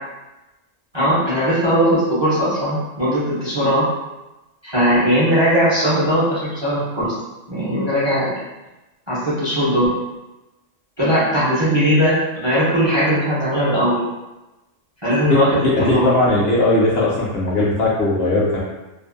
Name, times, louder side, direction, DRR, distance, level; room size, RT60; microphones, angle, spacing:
voice 1, 0.9-3.9 4.6-7.1 7.5-8.3 9.1-9.9 11.0-14.0 15.0-16.1, equal, 35° right, -9 dB, 0.4 m, -18 dB
voice 2, 15.3-18.6, left 2 dB, 60° left, -5 dB, 0.7 m, -18 dB
2.5 x 2.2 x 2.4 m, 1.0 s
omnidirectional pair, 1.3 m